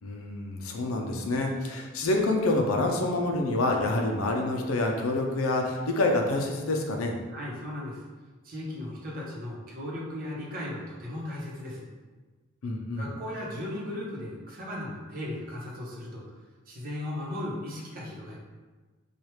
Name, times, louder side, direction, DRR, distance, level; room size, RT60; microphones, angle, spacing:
voice 1, 0.0-7.1 12.6-13.1, left 2 dB, 80° left, 2 dB, 0.5 m, -27 dB
voice 2, 7.3-8.0 8.4-11.9 13.0-16.2 16.7-18.4, left 1 dB, 45° right, -5 dB, 0.9 m, -36 dB
4.6 x 2.4 x 3.1 m, 1.3 s
head